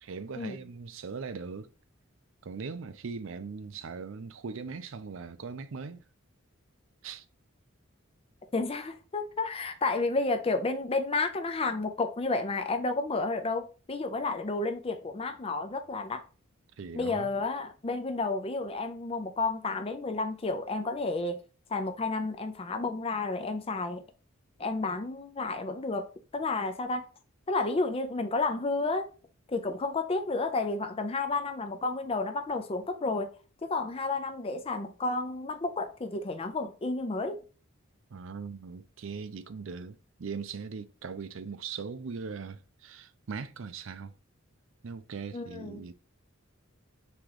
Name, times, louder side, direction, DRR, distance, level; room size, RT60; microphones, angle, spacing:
voice 1, 0.0-1.7 2.4-6.0 7.0-7.2 16.8-17.3 38.1-44.1 44.8-45.9, right 5 dB, 65° right, 0.5 m, -40 dB
voice 2, 8.5-16.3 16.9-21.4 21.7-24.0 24.6-27.1 27.5-29.1 29.5-33.3 33.6-37.4 45.3-45.8, left 3 dB, 30° left, 0.5 m, -31 dB
3.8 x 3.0 x 4.7 m
head